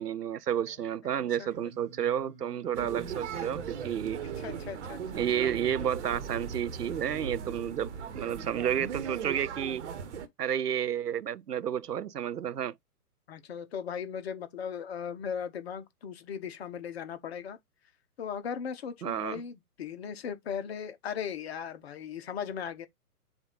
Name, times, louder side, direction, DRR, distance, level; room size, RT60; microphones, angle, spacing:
voice 1, 0.0-4.2 5.2-9.8 10.4-12.7 19.0-19.4, right 9 dB, 85° right, 0.6 m, -31 dB
voice 2, 1.1-1.5 4.4-5.2 13.3-17.6 18.2-22.9, left 7 dB, 40° left, 0.9 m, -38 dB
Singing, 1.5-8.7, right 3 dB, 10° right, 0.5 m, -52 dB
sound 1, 2.7-10.3, right 7 dB, 45° right, 1.2 m, -38 dB
7.1 x 2.6 x 5.3 m
figure-of-eight pair, 125°, 46 cm